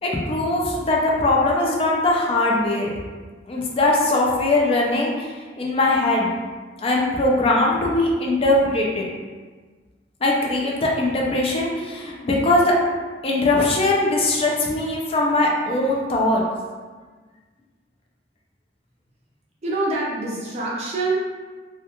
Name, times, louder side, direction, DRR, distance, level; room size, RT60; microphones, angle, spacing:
voice 1, 0.0-2.9 3.5-5.3 5.6-6.3 6.8-9.1 10.2-12.7 13.2-16.4, left 2 dB, 30° left, -2 dB, 0.4 m, -20 dB
voice 2, 19.6-21.2, right 2 dB, 35° right, -4 dB, 0.4 m, -25 dB
2.3 x 2.2 x 2.8 m, 1.4 s
head